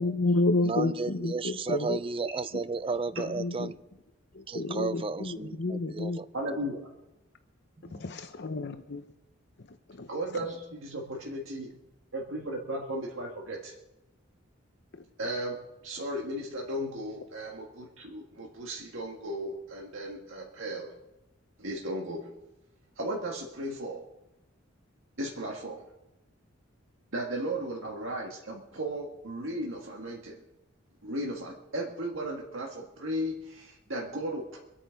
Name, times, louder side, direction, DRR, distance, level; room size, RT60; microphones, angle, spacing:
voice 1, 0.0-2.0 3.2-3.7 4.3-6.2 8.0-9.1 10.0-10.1, left 2 dB, 60° left, 7 dB, 0.8 m, -30 dB
voice 2, 0.6-3.7 4.5-6.3 7.9-8.0, right 4 dB, 30° right, 14 dB, 0.4 m, -33 dB
voice 3, 6.3-7.0 10.1-11.7 12.1-13.7 15.2-20.9 21.6-22.4 23.0-24.0 25.2-25.8 27.1-30.4 31.0-34.6, right 1 dB, 80° right, -1 dB, 1.8 m, -35 dB
25.0 x 8.8 x 5.2 m, 0.97 s
head